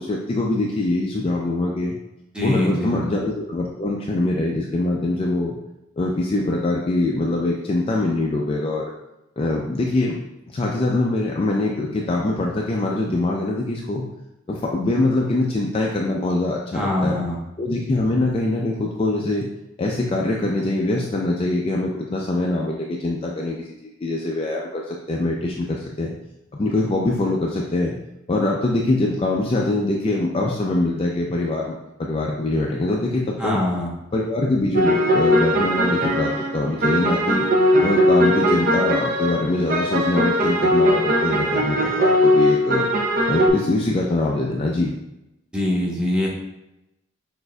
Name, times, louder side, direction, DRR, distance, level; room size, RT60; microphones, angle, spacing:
voice 1, 0.0-2.0 2.4-5.6 6.0-8.8 9.4-10.2 10.5-14.1 14.5-17.2 17.6-19.5 19.8-23.6 23.8-26.1 26.5-28.0 28.3-33.6 34.1-37.5 37.8-42.9 43.3-44.9, left 2 dB, 30° left, -2 dB, 0.3 m, -23 dB
voice 2, 2.3-3.0 16.7-17.4 33.4-33.9 45.5-46.3, left 1 dB, 5° right, -4 dB, 0.9 m, -23 dB
sound 1, 34.7-43.5, equal, 45° right, 0.5 m, -19 dB
6.1 x 2.6 x 2.2 m, 0.90 s
head